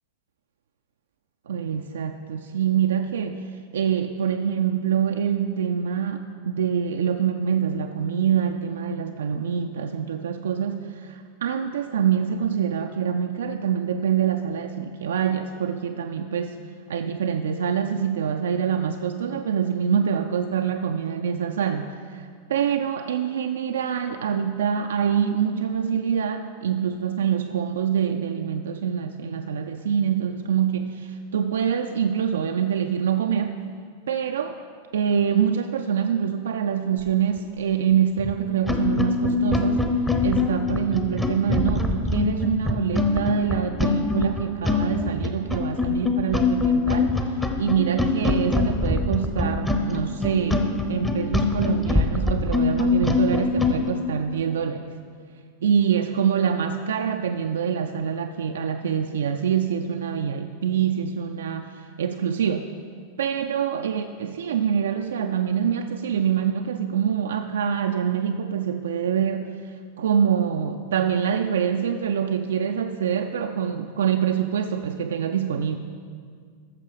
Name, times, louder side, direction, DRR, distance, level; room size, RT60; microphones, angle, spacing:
voice 1, 1.5-16.6 16.9-33.6 34.1-34.6 34.9-39.8 40.2-54.9 55.6-62.7 63.2-75.8, right 8 dB, 65° right, 6 dB, 0.4 m, -25 dB
sound 1, 38.2-38.3 38.6-53.8, left 3 dB, 10° left, 0.8 m, -23 dB
13.5 x 6.7 x 4.8 m, 2.1 s
figure-of-eight pair, 90°, 0 cm